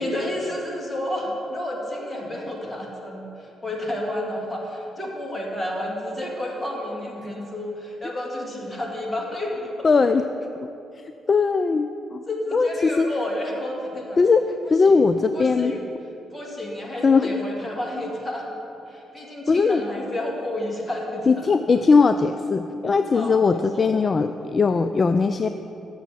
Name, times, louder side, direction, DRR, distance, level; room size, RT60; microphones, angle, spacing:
voice 1, 0.0-9.9 12.3-14.2 14.6-14.9 15.3-15.8 16.3-18.5 18.9-21.5 23.1-23.9, left 1 dB, 15° left, -2 dB, 2.0 m, -31 dB
voice 2, 9.8-10.2 10.6-10.7 11.3-12.2 12.5-13.1 14.2-15.7 17.0-17.3 19.5-19.8 21.3-25.5, left 4 dB, 35° left, 9 dB, 0.3 m, -19 dB
7.2 x 6.9 x 7.6 m, 2.9 s
cardioid pair, 90°, 0 cm